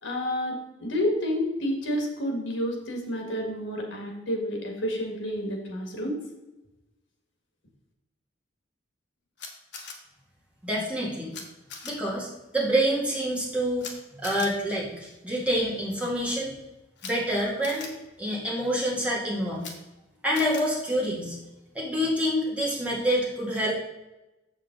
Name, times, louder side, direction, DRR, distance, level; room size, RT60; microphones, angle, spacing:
voice 1, 0.0-6.2, equal, 80° left, 2 dB, 1.9 m, -29 dB
Camera, 9.4-9.9 11.3-11.4 11.7-11.9 13.8-13.9 14.2-14.5 17.0-17.1 17.6-17.9 19.6-19.7 20.3-20.6, left 5 dB, 60° left, 1.4 m, -39 dB
voice 2, 10.6-11.3 11.8-12.3 12.5-13.8 14.1-16.5 17.0-17.9 18.2-19.7 20.2-21.4 21.7-23.7, equal, 5° right, -5 dB, 2.1 m, -27 dB
7.3 x 7.3 x 3.9 m, 1.0 s
head